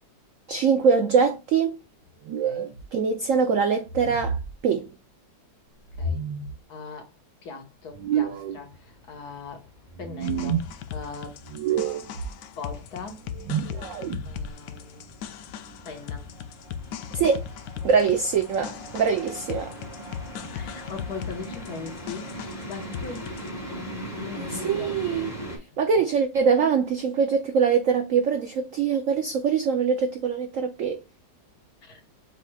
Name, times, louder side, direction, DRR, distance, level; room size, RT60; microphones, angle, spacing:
voice 1, 0.5-1.8 2.9-4.4 4.6-4.9 17.1-17.4 17.8-19.7 24.4-25.4 25.8-31.0, right 6 dB, 90° right, 0.7 m, -23 dB
sound 1, 2.2-2.8 3.9-4.5 5.9-6.5 7.9-8.6 9.9-10.7 11.4-12.3 13.2-14.5, right 7 dB, 70° right, 1.4 m, -29 dB
voice 2, 6.7-7.1 7.4-9.6 10.0-11.4 12.6-13.2 14.2-15.1 15.8-16.3 18.0-18.1 20.5-22.3 22.7-24.9 25.7-26.0 31.8-32.0, left 4 dB, 55° left, 1.7 m, -40 dB
sound 2, 8.0-25.6, right 1 dB, 20° left, 2.0 m, -41 dB
sound 3, 10.2-23.5, left 8 dB, 75° left, 0.8 m, -38 dB
7.3 x 3.0 x 2.3 m
omnidirectional pair, 2.1 m